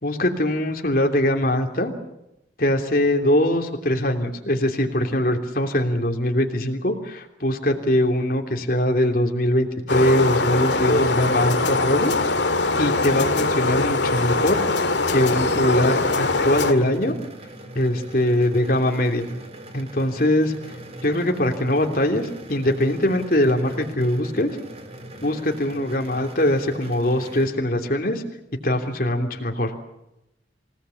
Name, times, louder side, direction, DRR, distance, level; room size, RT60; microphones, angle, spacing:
voice 1, 0.0-1.9 2.6-12.1 12.4-14.6 15.1-17.1 17.7-19.3 19.7-20.5 21.0-24.5 25.2-28.2 28.6-29.7, left 1 dB, 50° left, 3 dB, 3.1 m, -22 dB
sound 1, 9.9-16.7, left 3 dB, 75° left, 2.2 m, -22 dB
sound 2, 15.4-27.5, right 1 dB, 35° right, 3.7 m, -41 dB
29.0 x 18.5 x 7.1 m, 0.87 s
head